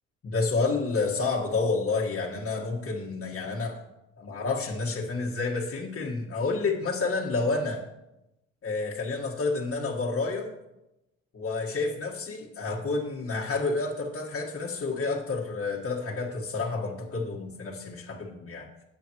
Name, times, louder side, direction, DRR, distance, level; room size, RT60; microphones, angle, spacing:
voice 1, 0.2-3.8 4.2-7.8 8.6-10.5 11.3-18.7, left 3 dB, 50° left, -4 dB, 1.8 m, -29 dB
18.5 x 7.0 x 3.1 m, 0.93 s
cardioid pair, 90°, 30 cm